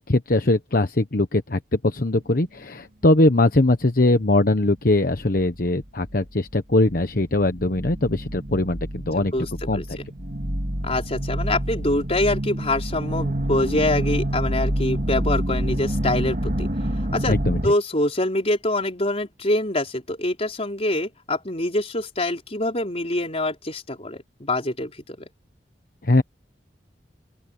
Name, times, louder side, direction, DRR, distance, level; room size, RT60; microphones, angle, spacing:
voice 1, 0.0-9.3 9.7-9.8 17.3-17.7 26.0-26.2, left 2 dB, 55° left, 1.1 m, -21 dB
sound 1, 5.1-5.3 5.6-6.5 6.8-17.7, right 1 dB, 50° right, 4.1 m, -27 dB
voice 2, 9.2-9.8 10.8-16.7 17.1-17.4 17.6-25.3, left 1 dB, 35° left, 4.6 m, -25 dB
open air
head